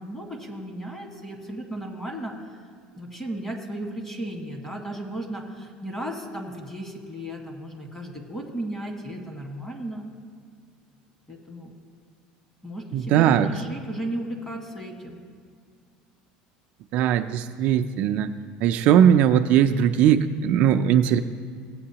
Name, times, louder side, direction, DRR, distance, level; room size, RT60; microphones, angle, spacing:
voice 1, 0.0-2.6 2.9-10.1 11.3-11.7 12.6-15.2, right 1 dB, 15° left, 1 dB, 1.6 m, -35 dB
voice 2, 12.9-13.5 16.9-18.3 18.6-21.2, right 9 dB, 55° right, 7 dB, 0.4 m, -19 dB
17.0 x 8.3 x 2.9 m, 2.1 s
cardioid pair, 145°, 3 cm